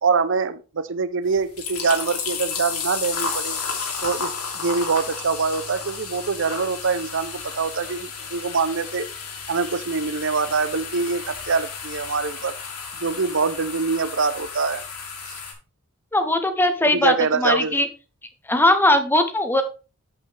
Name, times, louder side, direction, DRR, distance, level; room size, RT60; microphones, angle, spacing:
voice 1, 0.0-3.6 4.0-9.1 9.5-12.6 13.0-14.8 16.9-17.8, right 4 dB, 55° right, 13 dB, 0.7 m, -24 dB
sound 1, 1.3-15.5, left 5 dB, 75° left, 2.9 m, -32 dB
voice 2, 16.1-17.9 18.5-19.6, left 1 dB, 10° left, 8 dB, 0.9 m, -19 dB
8.0 x 7.9 x 3.5 m, 0.33 s
head